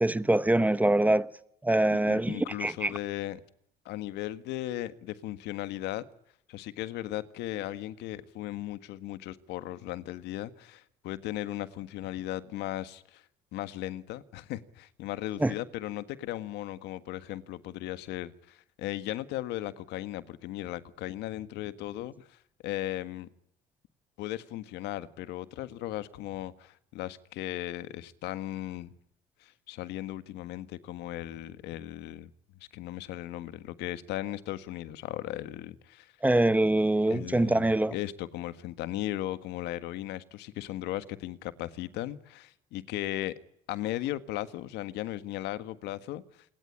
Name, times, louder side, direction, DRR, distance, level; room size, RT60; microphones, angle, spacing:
voice 1, 0.0-1.3 1.6-2.9 15.4-15.5 36.2-37.9, right 1 dB, 10° right, 1.1 m, -24 dB
voice 2, 1.9-3.4 3.8-6.0 6.5-13.2 13.5-23.3 24.2-28.9 29.4-32.3 32.7-36.1 37.1-43.3 43.7-46.4, left 14 dB, 90° left, 1.6 m, -37 dB
27.0 x 21.5 x 9.8 m
cardioid pair, 110°, 17 cm